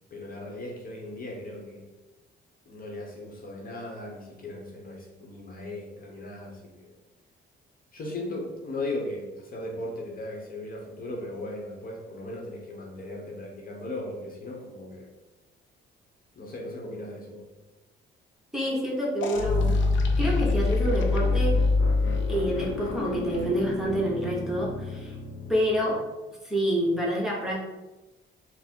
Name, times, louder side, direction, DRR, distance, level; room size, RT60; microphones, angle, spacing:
voice 1, 0.1-1.9 2.7-6.9 7.9-15.1 16.3-17.5, left 1 dB, 45° left, -1 dB, 1.0 m, -37 dB
voice 2, 18.5-19.7 20.2-21.6 22.3-25.2 25.5-26.0 26.4-27.6, equal, ahead, -5 dB, 1.0 m, -27 dB
sound 1, 19.2-25.8, left 3 dB, 70° left, 0.6 m, -26 dB
3.9 x 2.1 x 4.3 m, 1.1 s
cardioid pair, 90°, 20 cm